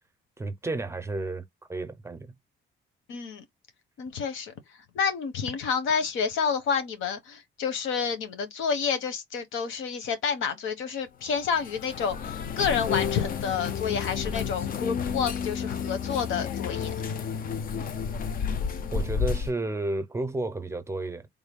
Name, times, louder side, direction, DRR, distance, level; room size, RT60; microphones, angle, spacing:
voice 1, 0.4-2.3 18.9-21.3, right 2 dB, 15° right, 0.6 m, -32 dB
voice 2, 3.1-3.4 4.0-4.5 4.9-17.0, left 6 dB, 75° left, 1.1 m, -29 dB
sound 1, 11.3-19.5, left 7 dB, 45° left, 0.5 m, -31 dB
3.6 x 2.2 x 3.6 m
cardioid pair, 140°, 20 cm